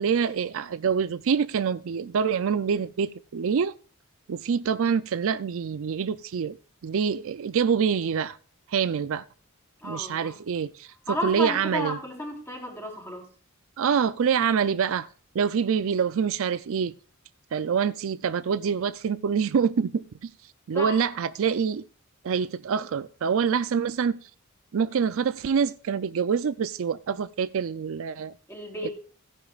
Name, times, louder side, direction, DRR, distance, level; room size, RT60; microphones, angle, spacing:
voice 1, 0.0-3.8 4.3-6.6 6.8-8.4 8.7-9.2 9.8-12.0 13.8-15.1 15.3-17.0 17.5-20.3 20.7-21.8 22.2-24.2 24.7-28.3 28.8-28.9, right 6 dB, 65° right, 0.4 m, -26 dB
voice 2, 9.8-10.4 11.1-13.2 20.7-21.0 28.5-28.9, equal, 10° left, 3.9 m, -32 dB
16.5 x 10.5 x 2.4 m
head